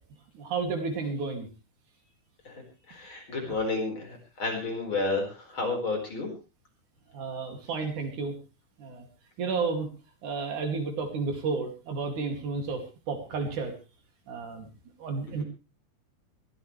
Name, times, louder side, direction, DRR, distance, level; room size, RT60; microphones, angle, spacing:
voice 1, 0.3-1.5 7.1-8.3 8.8-9.1 9.4-9.9 10.2-13.7 14.3-14.7 15.0-15.4, right 4 dB, 70° right, 5 dB, 4.0 m, -32 dB
voice 2, 2.9-6.3, left 3 dB, 40° left, 1 dB, 5.5 m, -31 dB
22.0 x 15.0 x 3.3 m, 0.30 s
omnidirectional pair, 3.6 m